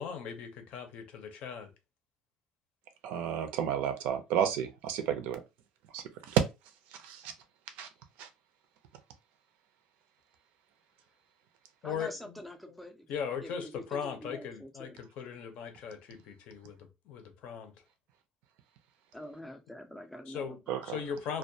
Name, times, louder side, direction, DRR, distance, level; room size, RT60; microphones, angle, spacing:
voice 1, 0.0-1.7 11.8-12.1 13.1-16.8 17.1-17.7 20.3-20.6 20.9-21.4, left 7 dB, 55° left, 0.5 m, -38 dB
voice 2, 3.0-5.4 5.9-6.4 7.0-7.3 7.8-7.9 8.2-8.3 20.7-21.0, right 9 dB, 75° right, 0.5 m, -31 dB
voice 3, 11.8-13.1 13.4-15.0 19.1-20.9, left 1 dB, ahead, 0.4 m, -46 dB
2.2 x 2.1 x 2.6 m
cardioid pair, 180°, 3 cm